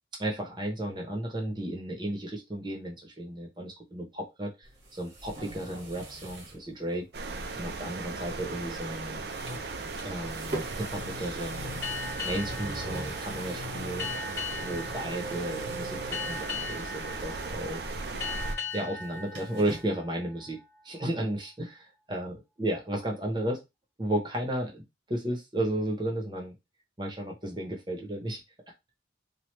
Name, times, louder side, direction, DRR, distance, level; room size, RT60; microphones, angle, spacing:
voice 1, 0.2-7.1 7.5-9.3 10.0-11.8 12.2-14.3 14.6-17.9 18.7-23.6 24.0-26.6 27.0-28.4, right 1 dB, 25° right, 1 dB, 0.8 m, -34 dB
sound 1, 4.6-6.6 6.9-7.0 8.7-9.0 9.2-16.6 17.0-17.5 17.7-19.8, right 1 dB, 90° right, 1.4 m, -41 dB
sound 2, 7.1-18.6, right 3 dB, 65° right, 0.5 m, -37 dB
sound 3, 11.8-21.0, left 5 dB, 15° left, 1.1 m, -39 dB
3.2 x 2.3 x 3.1 m, 0.22 s
head